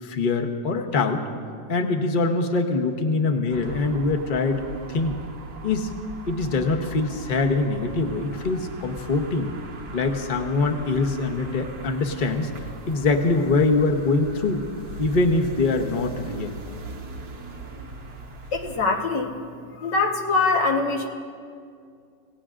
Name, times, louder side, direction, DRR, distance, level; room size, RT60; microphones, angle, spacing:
voice 1, 0.0-1.2 1.7-5.2 5.6-5.9 6.3-9.5 9.9-12.5 12.9-14.6 15.0-16.6, left 3 dB, 35° left, 4 dB, 0.9 m, -23 dB
sound 1, 3.5-18.8, right 2 dB, 70° right, 1.8 m, -39 dB
voice 2, 18.5-19.3 19.8-21.1, left 3 dB, 90° left, 1 dB, 2.0 m, -23 dB
27.5 x 17.5 x 2.5 m, 2.3 s
omnidirectional pair, 1.8 m